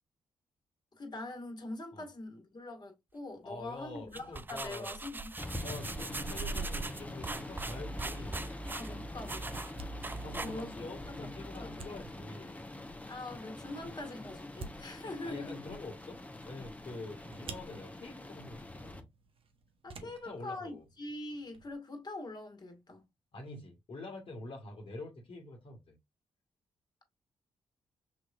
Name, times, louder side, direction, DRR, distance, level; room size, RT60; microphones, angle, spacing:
voice 1, 1.0-5.3 8.7-9.8 10.4-11.8 13.1-15.6 19.8-23.0, left 2 dB, 40° left, 1.9 m, -43 dB
voice 2, 3.4-4.9 5.6-8.5 10.1-12.6 15.2-19.0 20.0-20.8 23.3-26.0, left 2 dB, 60° left, 1.6 m, -46 dB
sound 1, 4.0-10.9, right 3 dB, 20° right, 0.4 m, -40 dB
sound 2, 5.4-19.0, left 1 dB, 15° left, 1.1 m, -44 dB
sound 3, 18.7-21.8, right 4 dB, 60° right, 1.0 m, -54 dB
6.0 x 3.1 x 2.5 m
supercardioid pair, 45°, 10 cm